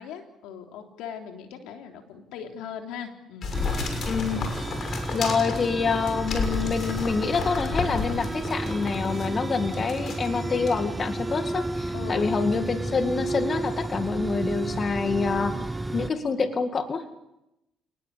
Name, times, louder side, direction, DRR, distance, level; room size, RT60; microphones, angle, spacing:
voice 1, 0.0-3.6 11.9-12.5, left 7 dB, 85° left, 4 dB, 3.5 m, -39 dB
sound 1, 3.4-9.3 9.7-10.3 10.7-10.8, left 4 dB, 55° left, 6.4 m, -32 dB
sound 2, 3.5-16.1, right 2 dB, 15° right, 0.8 m, -32 dB
voice 2, 4.0-4.6 5.1-15.6 15.9-17.1, left 5 dB, 40° left, 8 dB, 2.2 m, -27 dB
28.5 x 19.5 x 8.5 m, 0.90 s
cardioid pair, 90°, 0 cm